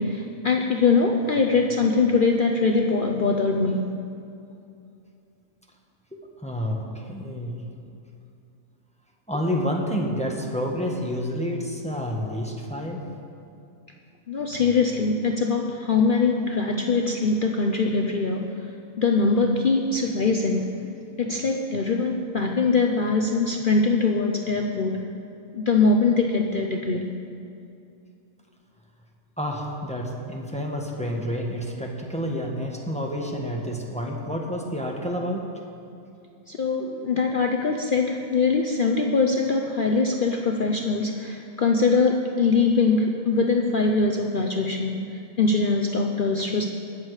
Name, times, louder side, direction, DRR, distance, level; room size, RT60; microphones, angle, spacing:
voice 1, 0.0-4.0 14.3-18.7 19.0-20.9 21.2-25.1 25.5-27.1 36.5-46.6, left 4 dB, 50° left, 2 dB, 0.7 m, -22 dB
voice 2, 6.1-7.6 9.3-13.0 29.4-35.5, equal, 5° left, -1 dB, 1.3 m, -29 dB
20.0 x 7.4 x 4.8 m, 2.6 s
omnidirectional pair, 1.4 m